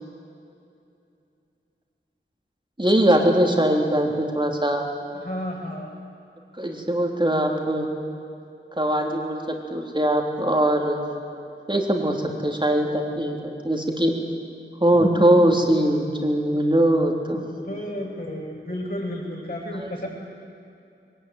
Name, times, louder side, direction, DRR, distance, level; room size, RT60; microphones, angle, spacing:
voice 1, 2.8-4.9 6.6-7.9 8.8-9.4 9.7-11.0 11.7-13.4 13.6-14.1 14.8-17.7 19.7-20.1, right 1 dB, 20° right, 1 dB, 3.5 m, -21 dB
voice 2, 5.1-5.9 17.3-20.1, left 1 dB, 45° left, -3 dB, 7.6 m, -32 dB
22.0 x 20.0 x 9.5 m, 2.6 s
wide cardioid pair, 45°, 21 cm